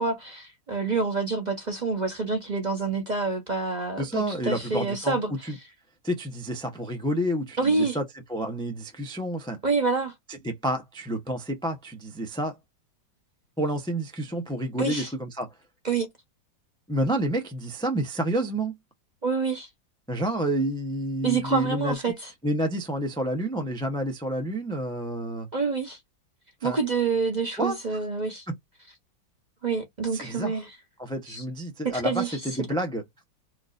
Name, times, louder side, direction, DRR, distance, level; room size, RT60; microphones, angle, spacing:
voice 1, 0.0-5.5 7.6-8.0 9.6-10.1 14.8-15.1 15.8-16.1 19.2-19.7 21.2-22.3 25.5-26.0 26.6-28.5 29.6-30.7 31.3-31.4 31.8-32.5, right 4 dB, 30° right, 0.8 m, -27 dB
voice 2, 4.0-5.2 6.0-8.0 8.3-9.6 10.4-12.5 13.6-15.5 16.9-18.7 20.1-22.0 22.4-25.5 26.6-26.8 27.6-27.8 28.5-28.6 30.1-30.5 31.0-33.0, right 1 dB, 5° left, 0.4 m, -29 dB
4.7 x 2.4 x 2.5 m
omnidirectional pair, 2.0 m